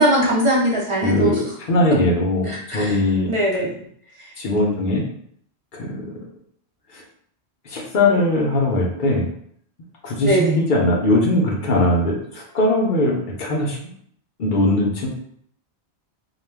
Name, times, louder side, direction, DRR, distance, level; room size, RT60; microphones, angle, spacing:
voice 1, 0.0-1.4 2.4-3.0 3.3-3.8 4.2-4.3 10.2-10.6, right 1 dB, 40° right, -4 dB, 0.5 m, -20 dB
voice 2, 1.0-3.3 4.4-5.0 5.7-6.2 7.7-9.3 10.0-13.8 14.4-15.1, left 1 dB, 60° left, -1 dB, 0.7 m, -20 dB
2.3 x 2.2 x 3.2 m, 0.65 s
omnidirectional pair, 1.1 m